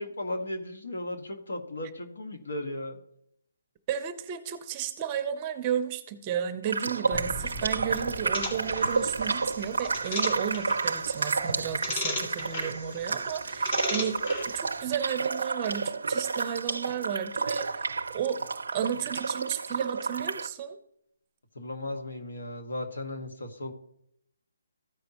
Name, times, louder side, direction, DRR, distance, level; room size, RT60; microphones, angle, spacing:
voice 1, 0.0-3.0 21.6-23.7, left 1 dB, 70° left, 5 dB, 1.6 m, -36 dB
voice 2, 3.9-14.2 14.5-17.9 18.1-18.4 18.7-20.8, right 9 dB, 25° right, 10 dB, 0.7 m, -33 dB
sound 1, 6.7-20.5, right 4 dB, 80° right, 0.4 m, -31 dB
sound 2, 7.1-12.3, equal, 20° left, 1.3 m, -44 dB
sound 3, 8.3-14.8, left 2 dB, 40° left, 2.2 m, -37 dB
14.5 x 5.3 x 3.0 m, 0.72 s
hypercardioid pair, 160°, 0 cm